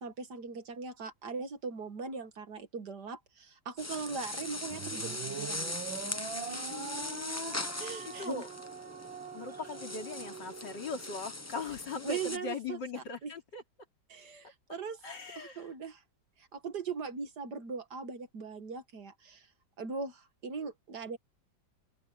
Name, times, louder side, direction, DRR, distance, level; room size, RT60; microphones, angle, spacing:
voice 1, 0.0-5.8 7.8-8.4 12.0-13.3 14.1-15.0 15.4-16.0 16.4-19.5 19.8-21.2, right 5 dB, 60° right, 2.1 m, -40 dB
sound 1, 3.8-12.4, left 2 dB, 20° left, 0.4 m, -40 dB
sound 2, 4.7-11.2, right 7 dB, 80° right, 2.3 m, -43 dB
voice 2, 6.5-7.6 8.2-8.5 9.3-13.6 14.7-15.7, left 4 dB, 65° left, 3.7 m, -40 dB
omnidirectional pair, 2.1 m